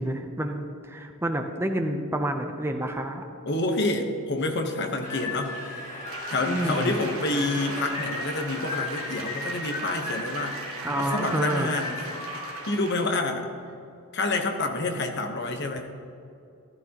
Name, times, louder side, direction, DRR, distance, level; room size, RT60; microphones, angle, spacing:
voice 1, 0.0-3.2 6.5-6.9 10.8-11.7, right 1 dB, 10° right, 5 dB, 0.6 m, -29 dB
voice 2, 3.5-5.6 6.3-12.0 12.7-13.5 14.1-15.9, left 2 dB, 50° left, 4 dB, 1.1 m, -28 dB
sound 1, 5.0-12.7, left 2 dB, 35° left, 1.9 m, -35 dB
Applause, 6.1-13.2 13.6-13.7, right 4 dB, 70° right, 1.4 m, -40 dB
15.0 x 12.0 x 3.0 m, 2.6 s
head